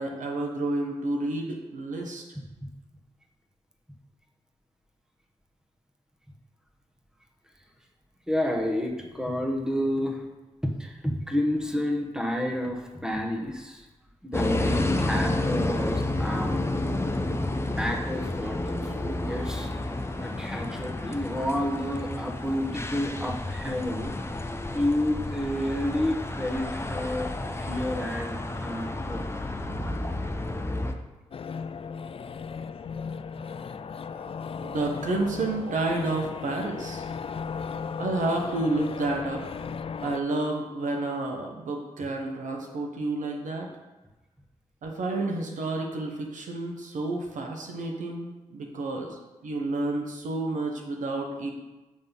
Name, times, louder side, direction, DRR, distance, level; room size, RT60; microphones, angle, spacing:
voice 1, 0.0-2.2 34.6-37.0 38.0-39.4 40.0-43.7 44.8-49.2 49.4-51.5, right 2 dB, 75° right, 1 dB, 1.1 m, -30 dB
voice 2, 2.3-2.7 8.3-10.2 10.6-13.9 14.2-16.5 17.7-19.7 20.2-24.1 24.7-27.3 27.6-29.2 34.1-34.3, left 1 dB, 5° right, 2 dB, 1.3 m, -30 dB
sound 1, 14.3-30.9, left 2 dB, 20° left, 0.8 m, -30 dB
sound 2, 31.3-40.2, left 6 dB, 45° left, 0.4 m, -36 dB
7.7 x 3.6 x 5.5 m, 1.1 s
supercardioid pair, 45°, 13 cm